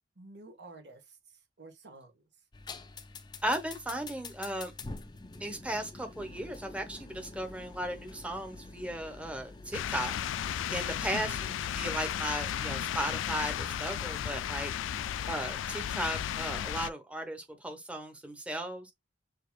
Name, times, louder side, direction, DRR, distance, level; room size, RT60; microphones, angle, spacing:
voice 1, 0.1-2.3 11.0-11.7, right 2 dB, 65° right, 1.4 m, -52 dB
sound 1, 2.5-16.5, left 3 dB, 25° left, 0.5 m, -48 dB
voice 2, 3.4-4.7 5.4-18.9, right 1 dB, 5° right, 0.9 m, -36 dB
sound 2, 9.7-16.9, left 10 dB, 80° left, 0.3 m, -34 dB
6.6 x 2.9 x 2.3 m
head